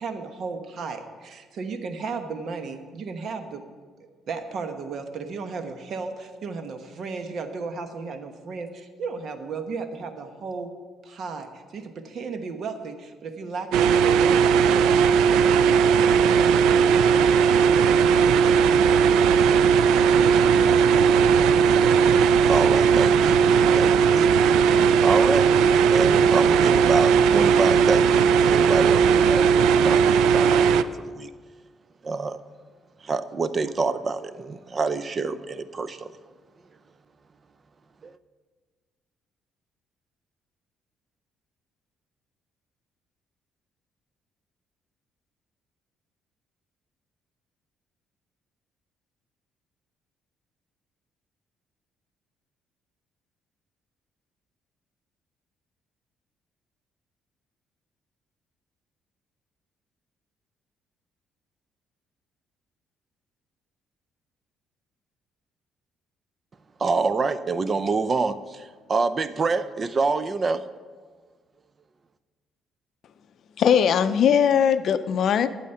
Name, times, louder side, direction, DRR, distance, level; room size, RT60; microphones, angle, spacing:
voice 1, 0.0-3.6 4.3-10.7 11.0-16.7 17.1-19.3, right 4 dB, 55° right, 7 dB, 1.1 m, -35 dB
sound 1, 13.7-30.8, right 6 dB, 90° right, 0.4 m, -18 dB
voice 2, 22.5-23.4 23.7-24.6 25.0-25.6 25.9-31.3 32.0-32.4 33.0-36.1 38.0-38.1 66.8-70.6, right 4 dB, 30° right, 13 dB, 0.6 m, -27 dB
voice 3, 73.6-75.5, left 8 dB, 55° left, 12 dB, 0.5 m, -20 dB
12.0 x 8.5 x 5.6 m, 1.5 s
cardioid pair, 120°, 0 cm